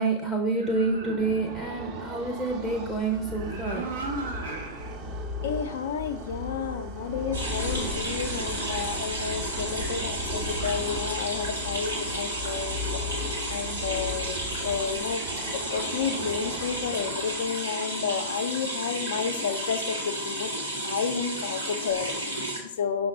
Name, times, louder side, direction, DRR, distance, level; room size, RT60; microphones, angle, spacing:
voice 1, 0.0-3.9, right 3 dB, ahead, 1 dB, 0.6 m, -28 dB
sound 1, 0.5-1.7 3.1-5.0 5.5-5.6 7.5-10.0, right 2 dB, 65° right, 0.8 m, -38 dB
sound 2, 0.7-17.7, left 1 dB, 35° right, 0.8 m, -37 dB
voice 2, 5.4-12.9 13.5-15.2 15.5-20.5 20.8-23.1, left 7 dB, 60° left, 10 dB, 0.4 m, -31 dB
sound 3, 7.3-22.6, right 1 dB, 90° right, 1.1 m, -32 dB
5.8 x 2.1 x 3.8 m, 0.75 s
figure-of-eight pair, 90°, 0 cm